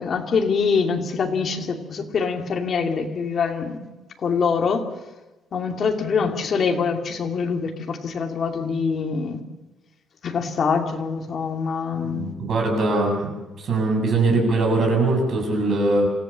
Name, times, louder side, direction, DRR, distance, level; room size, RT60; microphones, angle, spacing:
voice 1, 0.0-3.9 4.2-4.8 5.5-9.4 10.2-12.3, left 5 dB, 40° left, 3 dB, 2.6 m, -24 dB
voice 2, 12.1-13.3 13.6-16.1, right 2 dB, 45° right, 1 dB, 7.8 m, -21 dB
27.0 x 15.5 x 7.5 m, 1.1 s
cardioid pair, 170°, 0 cm